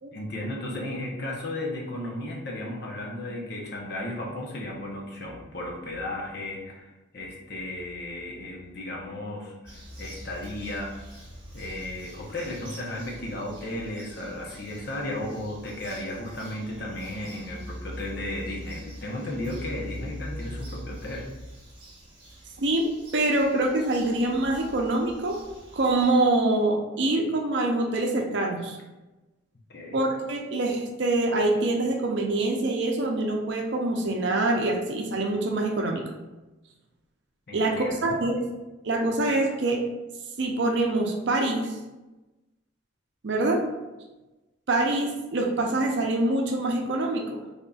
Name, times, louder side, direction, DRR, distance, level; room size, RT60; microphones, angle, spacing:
voice 1, 0.1-10.9 11.5-21.3 29.7-30.0 37.5-38.2, left 1 dB, 50° left, -1 dB, 0.7 m, -35 dB
Bird vocalization bird call bird song, 9.6-26.1, equal, 25° right, 1.1 m, -43 dB
voice 2, 23.1-25.4 25.7-28.8 29.9-36.0 37.5-38.4 38.8-39.8 40.4-41.8 43.2-43.6 44.7-47.2, right 2 dB, 60° right, 2 dB, 0.6 m, -25 dB
4.0 x 3.5 x 2.3 m, 1.1 s
head